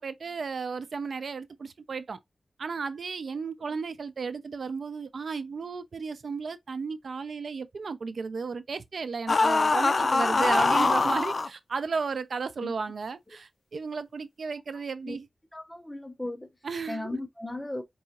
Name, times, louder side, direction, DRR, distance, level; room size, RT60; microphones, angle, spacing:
voice 1, 0.0-2.2 2.6-15.3 16.6-17.2, right 5 dB, 80° right, 0.4 m, -34 dB
sound 1, 9.3-11.5, left 3 dB, 50° left, 0.5 m, -23 dB
voice 2, 15.5-16.5 16.9-17.8, left 2 dB, 15° left, 0.7 m, -36 dB
4.6 x 2.6 x 2.9 m
wide cardioid pair, 110°, 0 cm